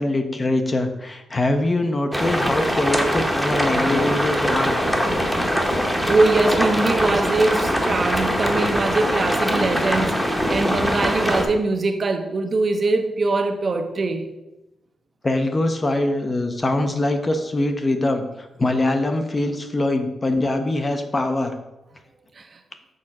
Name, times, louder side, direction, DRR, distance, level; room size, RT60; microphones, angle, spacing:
voice 1, 0.0-4.8 6.4-6.6 10.5-10.6 15.2-18.2 18.6-21.5, left 2 dB, 20° left, 6 dB, 0.6 m, -23 dB
sound 1, 2.1-11.5, equal, 5° left, 0.9 m, -22 dB
voice 2, 5.7-14.3 22.4-22.6, right 3 dB, 35° right, 6 dB, 0.7 m, -22 dB
6.4 x 3.8 x 5.9 m, 0.96 s
wide cardioid pair, 150°, 0 cm